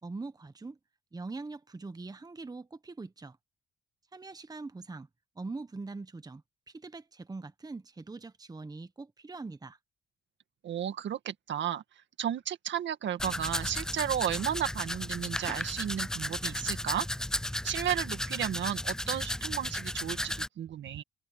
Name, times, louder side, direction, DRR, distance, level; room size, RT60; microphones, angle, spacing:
voice 1, 0.0-0.8 1.1-3.4 4.1-5.1 5.3-9.8, right 3 dB, 20° right, 1.3 m, -42 dB
voice 2, 10.6-11.8 12.2-17.1 17.6-21.0, right 10 dB, 65° right, 2.0 m, -33 dB
Domestic sounds home sounds, 13.2-20.5, left 1 dB, 5° left, 0.3 m, -34 dB
cardioid pair, 90°, 20 cm